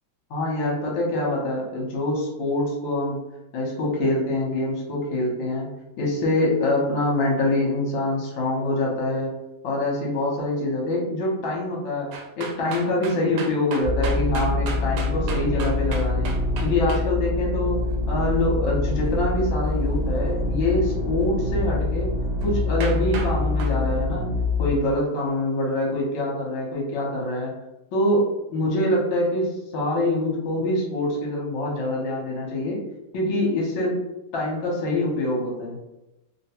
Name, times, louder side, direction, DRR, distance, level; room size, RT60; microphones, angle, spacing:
voice 1, 0.3-3.2 3.5-5.7 6.0-9.3 9.6-12.1 12.4-16.3 16.6-17.8 18.1-22.1 22.4-24.2 24.6-27.5 27.9-32.8 33.1-34.0 34.3-35.8, left 1 dB, 65° left, -3 dB, 1.6 m, -25 dB
sound 1, 12.1-17.0 22.4-22.5 22.8-23.3 23.6-23.8, right 4 dB, 80° right, 1.4 m, -34 dB
sound 2, 13.8-24.7, left 2 dB, 55° right, 1.1 m, -25 dB
3.6 x 2.2 x 2.9 m, 0.96 s
omnidirectional pair, 2.4 m